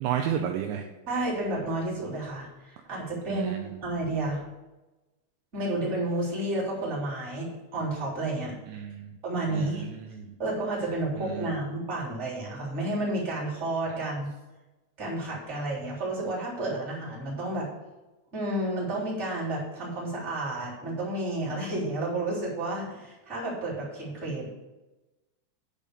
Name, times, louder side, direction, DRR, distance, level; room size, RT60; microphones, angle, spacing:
voice 1, 0.0-0.9 3.3-3.8 8.7-9.1 9.5-10.3 11.2-11.5, right 9 dB, 80° right, 4 dB, 2.8 m, -32 dB
voice 2, 1.1-4.4 5.5-8.5 9.2-9.9 10.4-14.3 15.0-17.7 18.3-24.5, right 2 dB, 15° right, -7 dB, 3.2 m, -31 dB
9.9 x 5.5 x 6.7 m, 1.1 s
omnidirectional pair, 5.5 m